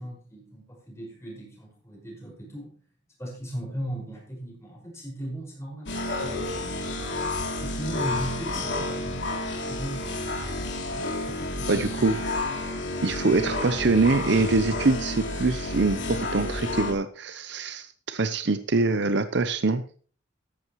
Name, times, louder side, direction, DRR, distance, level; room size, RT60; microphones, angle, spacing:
voice 1, 0.0-2.8 3.2-6.8 7.1-7.2 7.6-11.8, equal, 15° left, -2 dB, 5.5 m, -38 dB
sound 1, 5.9-16.9, left 2 dB, 60° left, 2.9 m, -30 dB
voice 2, 11.7-12.4 13.0-19.8, right 3 dB, 60° right, 11 dB, 0.7 m, -24 dB
14.0 x 11.5 x 3.1 m, 0.43 s
head